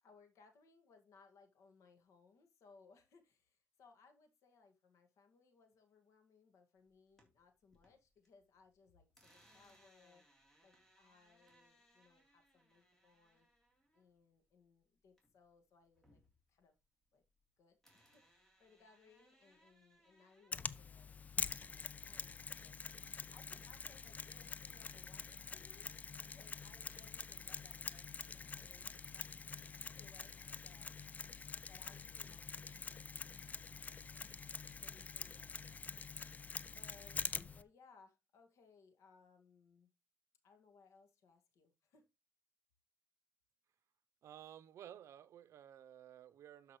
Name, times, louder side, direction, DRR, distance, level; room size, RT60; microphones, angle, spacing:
voice 1, 0.0-10.2 10.6-13.5 13.9-16.2 16.5-16.7 17.1-17.2 17.6-30.9 31.7-34.4 34.8-36.0 36.7-39.9 40.4-42.0, left 4 dB, 85° left, 2.0 m, -67 dB
sound 1, 6.9-8.3 8.6-15.5 15.8-17.5 17.8-21.4, right 1 dB, 10° left, 3.4 m, -71 dB
Mechanisms, 20.5-37.6, left 5 dB, 30° left, 0.4 m, -46 dB
voice 2, 44.2-46.8, right 10 dB, 75° right, 0.7 m, -55 dB
12.5 x 5.3 x 3.1 m
cardioid pair, 130°, 5 cm